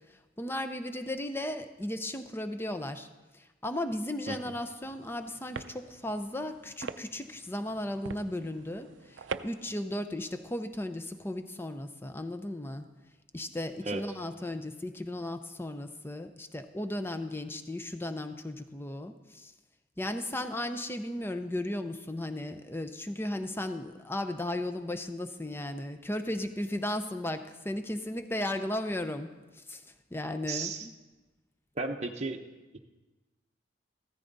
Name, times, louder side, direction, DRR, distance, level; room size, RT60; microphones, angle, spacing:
voice 1, 0.1-3.1 3.3-12.9 13.3-19.5 20.0-30.9, left 1 dB, 10° left, 9 dB, 0.6 m, -35 dB
sound 1, 4.8-9.8, right 5 dB, 75° right, 0.5 m, -44 dB
voice 2, 30.5-30.9 31.8-32.4, right 3 dB, 35° right, 2 dB, 0.8 m, -34 dB
15.0 x 14.0 x 4.0 m, 1.2 s
head